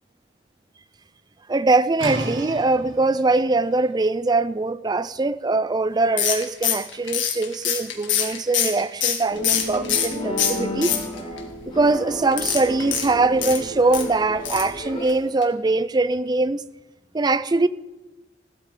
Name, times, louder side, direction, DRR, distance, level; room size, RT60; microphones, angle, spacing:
voice 1, 1.5-11.0 11.8-16.6 17.1-17.7, right 3 dB, 20° right, 0.4 m, -22 dB
sound 1, 2.0-7.6, right 1 dB, 70° right, 2.4 m, -36 dB
sound 2, 6.2-10.1 10.4-11.4 12.3-14.1 14.4-14.8 15.0-15.1 15.4-15.5, left 9 dB, 70° left, 2.1 m, -24 dB
sound 3, 9.3-15.0, equal, 30° left, 5.7 m, -32 dB
16.0 x 13.0 x 3.8 m
head